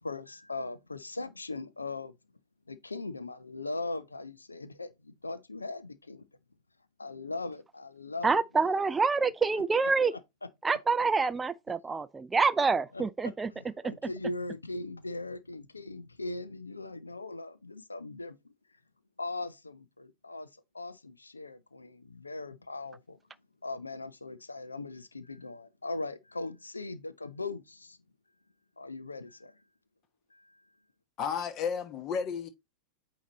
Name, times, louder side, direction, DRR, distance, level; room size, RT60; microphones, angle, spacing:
voice 1, 0.0-2.1 2.7-6.2 7.0-8.4 12.9-18.4 19.2-20.5 20.7-23.2 23.6-28.0 28.8-29.5 30.3-30.6, left 2 dB, 80° left, 0.6 m, -39 dB
voice 2, 8.2-10.1 10.6-13.5 13.8-13.9, right 4 dB, 15° right, 0.3 m, -27 dB
voice 3, 31.2-32.5, left 6 dB, 35° left, 1.1 m, -32 dB
8.7 x 2.9 x 4.0 m
figure-of-eight pair, 90°, 0 cm